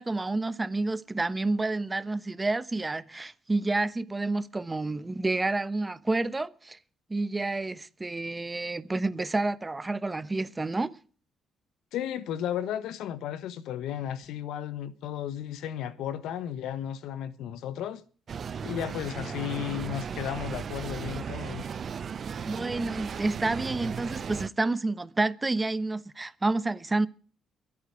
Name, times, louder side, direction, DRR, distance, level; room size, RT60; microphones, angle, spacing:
voice 1, 0.0-6.8 7.1-10.9 22.4-27.1, right 2 dB, 20° right, 1.0 m, -29 dB
voice 2, 11.9-18.0 18.6-21.7, left 10 dB, 85° left, 1.3 m, -34 dB
sound 1, 18.3-24.5, right 7 dB, 50° right, 0.7 m, -36 dB
22.5 x 8.9 x 4.9 m
cardioid pair, 90°, 0 cm